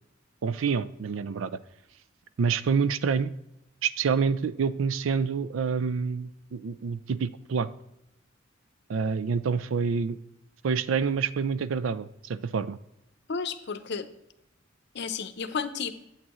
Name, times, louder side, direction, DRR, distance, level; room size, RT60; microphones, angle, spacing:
voice 1, 0.4-1.5 2.4-3.3 3.8-7.7 8.9-10.2 10.6-12.8, right 5 dB, 90° right, 16 dB, 0.4 m, -27 dB
voice 2, 13.3-14.1 14.9-15.9, left 5 dB, 60° left, 11 dB, 0.7 m, -32 dB
8.6 x 8.5 x 3.0 m, 0.83 s
head